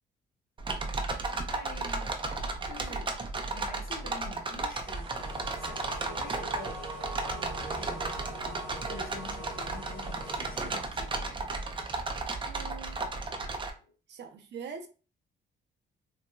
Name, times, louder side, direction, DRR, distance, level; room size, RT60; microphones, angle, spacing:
sound 1, 0.6-13.7, right 3 dB, 25° right, 0.6 m, -34 dB
voice 1, 1.5-2.1 2.6-3.0 3.5-5.1 5.6-6.9 7.3-11.4 13.8-13.9, left 3 dB, 50° left, 1.0 m, -47 dB
sound 2, 4.8-10.9, right 3 dB, 90° right, 0.9 m, -44 dB
sound 3, 5.2-10.8, left 8 dB, 80° left, 0.4 m, -49 dB
voice 2, 12.4-13.1 14.1-14.9, right 6 dB, 60° right, 0.7 m, -44 dB
3.9 x 2.2 x 2.2 m
cardioid pair, 90°, 20 cm